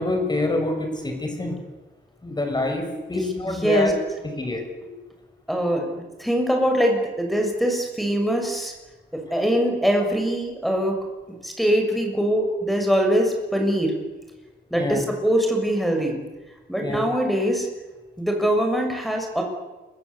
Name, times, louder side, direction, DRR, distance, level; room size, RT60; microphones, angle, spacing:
voice 1, 0.0-1.6 2.2-3.9 4.4-5.0 14.7-15.0 16.8-17.0, left 2 dB, 20° left, 4 dB, 6.4 m, -26 dB
voice 2, 3.4-3.9 5.5-8.7 9.1-10.9 11.4-14.0 14.7-16.2 16.7-17.7 18.2-19.4, equal, ahead, 2 dB, 6.6 m, -23 dB
28.0 x 23.5 x 8.3 m, 1.1 s
wide cardioid pair, 130°, 19 cm